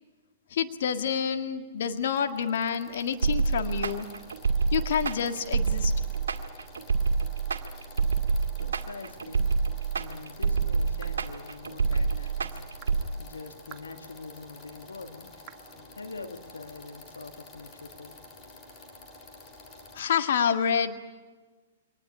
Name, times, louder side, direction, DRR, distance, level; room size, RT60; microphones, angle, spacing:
voice 1, 0.5-4.1 4.7-5.9 19.9-21.0, left 7 dB, 60° left, 7 dB, 1.8 m, -28 dB
sound 1, 2.0-20.0, left 2 dB, 25° left, 3.5 m, -49 dB
sound 2, 3.2-13.0, right 5 dB, 75° right, 1.7 m, -27 dB
voice 2, 8.6-9.5 9.8-15.3 15.9-18.1, left 3 dB, 85° left, 7 dB, 1.7 m, -44 dB
sound 3, 11.0-11.2 11.9-12.1 12.8-13.0 13.7-13.9 14.6-14.7 15.5-15.7, right 9 dB, 30° right, 1.7 m, -49 dB
24.5 x 19.5 x 9.9 m, 1.3 s
hypercardioid pair, 120°, 0 cm